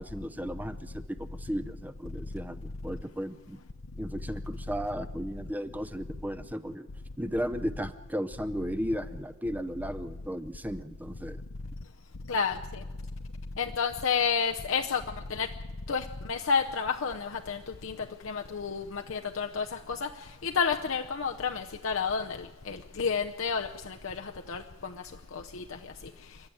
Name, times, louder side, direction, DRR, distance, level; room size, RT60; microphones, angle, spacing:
voice 1, 0.0-3.6 4.0-6.9 7.2-11.4, equal, 10° right, 11 dB, 0.6 m, -35 dB
voice 2, 13.6-15.0 15.3-15.5 15.9-17.9 18.2-20.1 20.4-24.9 25.3-25.6, left 6 dB, 70° left, 3 dB, 0.7 m, -30 dB
29.5 x 11.5 x 8.8 m, 1.2 s
head